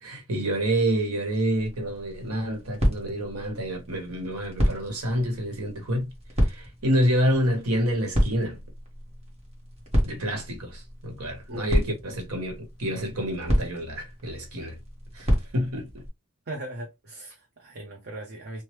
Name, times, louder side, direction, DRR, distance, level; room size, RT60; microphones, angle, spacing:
voice 1, 0.0-6.0 6.4-8.6 10.0-14.8 15.1-15.9, equal, 85° right, 1.0 m, -28 dB
sound 1, 1.6-16.1, equal, 30° right, 1.0 m, -30 dB
voice 2, 16.5-18.6, right 1 dB, 45° right, 0.6 m, -38 dB
3.0 x 2.1 x 3.1 m
head